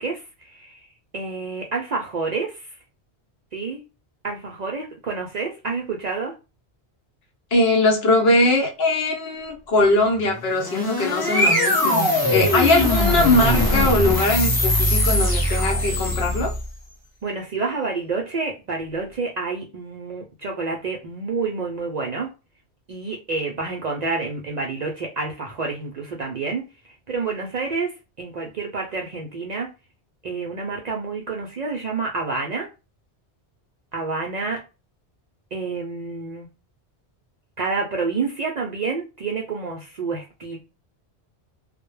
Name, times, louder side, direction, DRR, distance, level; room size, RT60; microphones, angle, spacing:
voice 1, 0.0-2.7 3.5-3.8 4.2-6.3 17.2-22.3 22.9-26.7 27.1-27.9 28.2-29.7 30.2-32.7 33.9-34.6 35.5-36.5 37.6-40.6, right 4 dB, 60° right, 0.5 m, -28 dB
voice 2, 7.5-16.5, left 2 dB, 70° left, 0.9 m, -20 dB
sound 1, 10.4-16.7, left 1 dB, 25° left, 0.6 m, -21 dB
2.2 x 2.0 x 3.0 m
omnidirectional pair, 1.1 m